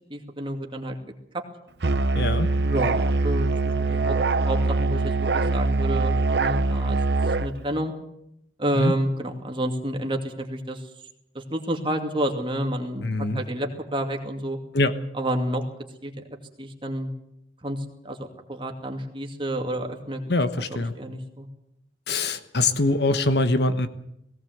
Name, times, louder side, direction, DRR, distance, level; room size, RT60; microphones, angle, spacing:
voice 1, 0.1-1.0 2.6-4.2 4.5-7.0 7.4-7.9 8.6-10.8 11.3-13.1 13.3-14.6 15.1-15.6 16.0-16.1 16.6-17.1 17.6-20.2 20.7-21.5, right 1 dB, 25° right, 3 dB, 2.4 m, -29 dB
Musical instrument, 1.8-7.5, right 3 dB, 65° right, 0.8 m, -23 dB
voice 2, 2.1-2.5 8.8-8.9 13.0-13.4 14.7-14.9 20.3-20.9 22.1-23.9, left 2 dB, 60° left, 10 dB, 1.2 m, -23 dB
18.5 x 17.5 x 8.0 m, 0.79 s
head